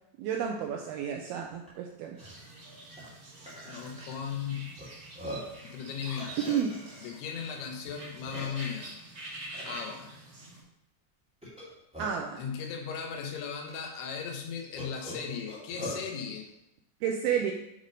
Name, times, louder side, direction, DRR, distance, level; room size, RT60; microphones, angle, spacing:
voice 1, 0.2-2.2 6.5-6.8 12.0-12.4 17.0-17.5, right 8 dB, 80° right, 2 dB, 2.3 m, -31 dB
Burping eructation, 1.7-1.8 2.1-2.3 3.0-3.1 3.4-4.1 4.8-4.9 5.1-5.6 6.2-7.2 7.9-8.0 8.2-8.8 9.5-9.9 11.4-12.3 13.1-13.2 13.7-13.8 14.8-16.0, equal, 5° right, 1.0 m, -41 dB
sound 1, 2.2-10.6, right 2 dB, 45° right, 1.9 m, -46 dB
voice 2, 3.7-4.8 5.6-6.7 7.0-9.0 9.6-10.1 12.4-16.5, left 7 dB, 75° left, 3 dB, 2.7 m, -37 dB
9.0 x 3.5 x 5.2 m, 0.84 s
omnidirectional pair, 5.0 m